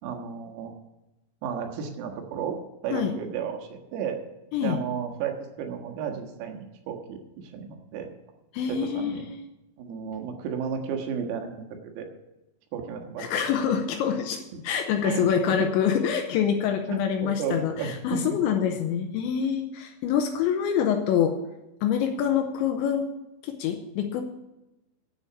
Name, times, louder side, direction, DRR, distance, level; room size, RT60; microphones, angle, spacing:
voice 1, 0.0-0.7 1.4-2.6 2.8-4.2 4.6-8.1 8.7-9.3 9.8-12.1 12.7-13.3 15.0-15.6 16.9-17.9 18.3-18.4, right 7 dB, 85° right, 3 dB, 4.2 m, -33 dB
voice 2, 8.5-9.4 13.2-21.4 21.8-23.1 23.4-24.2, left 8 dB, 80° left, 5 dB, 2.8 m, -26 dB
9.9 x 8.0 x 8.4 m, 0.96 s
omnidirectional pair, 6.0 m